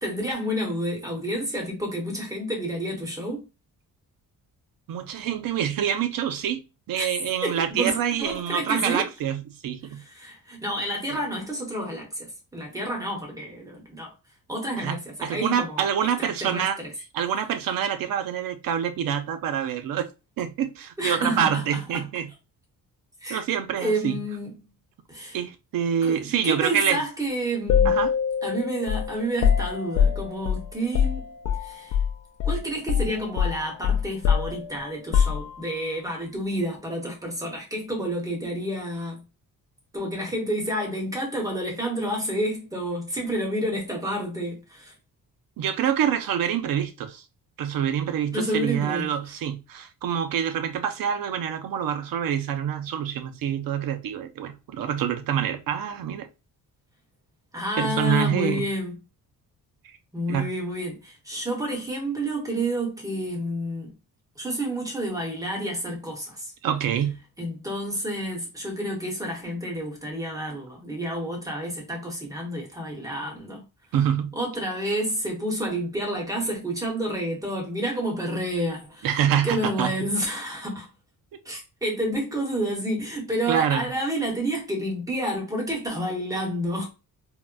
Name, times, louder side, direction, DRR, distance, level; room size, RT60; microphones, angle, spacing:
voice 1, 0.0-3.4 7.0-7.1 7.4-9.1 10.0-14.1 14.5-15.8 16.2-16.9 21.0-22.0 23.2-23.4 23.8-24.5 25.1-25.4 26.0-28.0 28.4-31.3 31.6-32.0 32.4-39.2 39.9-44.9 48.3-49.1 57.5-59.0 60.1-63.9 64.4-66.5 67.4-73.6 74.3-79.1 79.4-80.9 81.4-86.8, right 1 dB, 10° right, 0.9 m, -29 dB
voice 2, 4.9-6.6 6.9-10.0 11.1-11.2 14.8-16.8 17.1-20.1 20.4-22.3 23.3-24.2 25.3-27.0 27.8-28.1 45.6-47.2 47.6-56.3 57.8-58.7 60.3-60.5 66.6-67.2 73.9-74.3 79.0-80.0 83.5-83.9, right 9 dB, 65° right, 0.5 m, -26 dB
sound 1, 27.7-32.1 32.4-32.6 32.9-35.9, left 7 dB, 55° left, 0.4 m, -24 dB
3.8 x 2.1 x 2.2 m
wide cardioid pair, 170°, 36 cm